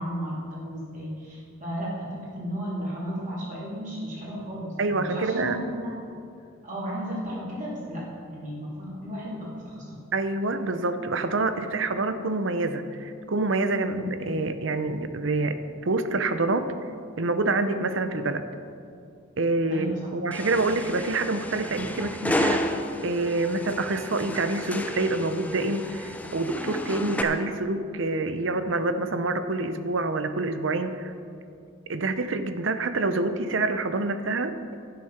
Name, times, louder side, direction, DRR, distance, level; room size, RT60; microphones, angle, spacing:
voice 1, 0.0-6.0 6.6-10.0 13.8-14.0 19.7-20.0, equal, 35° right, -6 dB, 2.8 m, -34 dB
voice 2, 4.8-5.6 10.1-16.7 17.2-18.5 19.4-22.7 23.0-31.1 31.9-34.7, right 2 dB, 60° right, 10 dB, 0.7 m, -27 dB
sound 1, 20.3-27.2, left 1 dB, 5° left, 0.6 m, -32 dB
11.0 x 9.5 x 5.8 m, 2.4 s
head